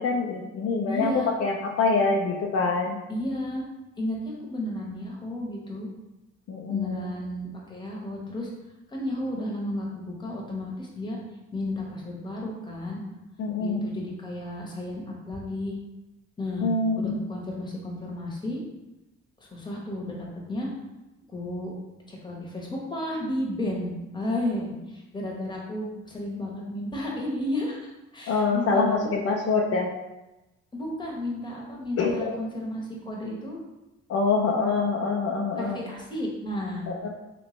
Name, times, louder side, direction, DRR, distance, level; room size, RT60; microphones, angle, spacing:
voice 1, 0.0-1.1 1.4-3.0 6.5-7.1 13.4-13.8 16.6-17.2 28.3-29.9 32.0-32.3 34.1-35.8 36.9-37.1, left 4 dB, 55° left, -1 dB, 0.5 m, -25 dB
voice 2, 0.9-1.3 3.1-3.6 4.0-5.9 6.7-8.5 8.9-11.2 11.5-13.0 13.6-15.8 16.4-16.7 17.0-18.6 19.4-20.7 21.3-21.7 22.1-29.1 30.7-33.6 35.1-35.2 35.6-36.9, left 1 dB, 15° left, -2 dB, 1.0 m, -33 dB
3.2 x 3.0 x 3.1 m, 1.0 s
cardioid pair, 90°, 30 cm